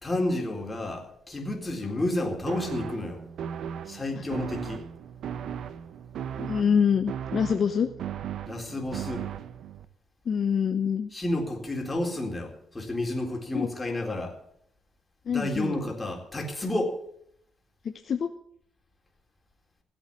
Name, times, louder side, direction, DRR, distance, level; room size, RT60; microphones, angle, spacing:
voice 1, 0.0-3.2 3.9-4.9 8.5-9.3 11.1-14.4 15.3-17.0, left 1 dB, 20° left, 2 dB, 3.9 m, -31 dB
sound 1, 2.5-9.8, right 8 dB, 70° right, 0.9 m, -37 dB
voice 2, 6.4-7.9 10.3-11.1 13.5-13.7 15.3-15.7 17.8-18.3, left 7 dB, 55° left, 8 dB, 0.9 m, -25 dB
16.5 x 8.1 x 8.5 m, 0.70 s
cardioid pair, 90°, 0 cm